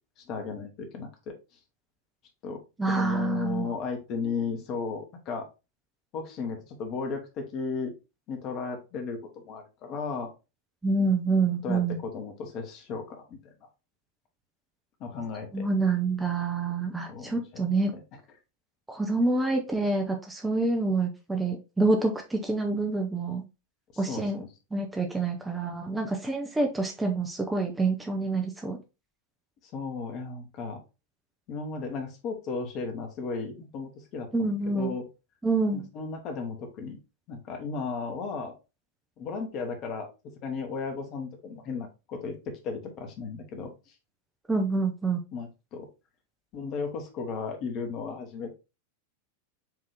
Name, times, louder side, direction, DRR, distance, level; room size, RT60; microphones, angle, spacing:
voice 1, 0.2-1.3 2.4-5.4 6.1-7.9 8.3-10.3 11.6-13.4 15.0-15.7 17.1-17.6 17.9-18.0 23.9-24.5 29.7-30.8 31.5-35.0 35.7-37.0 37.3-38.5 39.2-40.1 40.4-43.7 45.3-45.9 46.5-48.5, left 5 dB, 40° left, 4 dB, 1.2 m, -35 dB
voice 2, 2.8-3.7 10.8-12.0 15.5-18.0 18.9-23.4 24.0-24.4 24.7-28.8 34.3-34.9 35.4-35.8 44.5-45.2, right 3 dB, 10° right, 2 dB, 0.7 m, -27 dB
4.7 x 2.9 x 3.4 m, 0.27 s
figure-of-eight pair, 90°, 0 cm